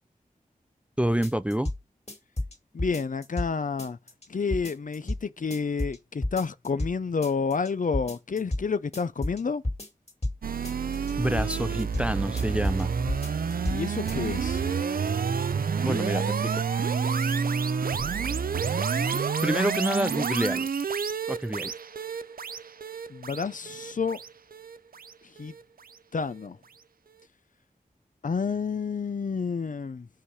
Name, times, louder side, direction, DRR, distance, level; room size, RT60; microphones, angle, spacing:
voice 1, 1.0-1.7 11.2-12.9 15.8-16.6 19.4-20.7 21.3-21.7, equal, 10° right, 0.4 m, -27 dB
sound 1, 1.2-1.8 2.1-3.5 3.8-4.3 4.5-5.2 5.5-6.0 6.2-6.9 7.2-7.7 7.9-8.6 8.9-10.4 10.6-11.1 11.4-12.1 12.4-12.8 13.1-13.8 14.1-14.2, left 1 dB, 45° left, 2.5 m, -31 dB
voice 2, 2.7-4.0 4.3-9.6 13.7-14.6 23.1-24.2 25.4-25.5 26.1-26.6 28.2-30.1, left 5 dB, 60° left, 0.6 m, -29 dB
sound 2, 10.4-25.6, right 6 dB, 70° right, 0.5 m, -29 dB
5.6 x 4.9 x 5.6 m
wide cardioid pair, 55°, 15 cm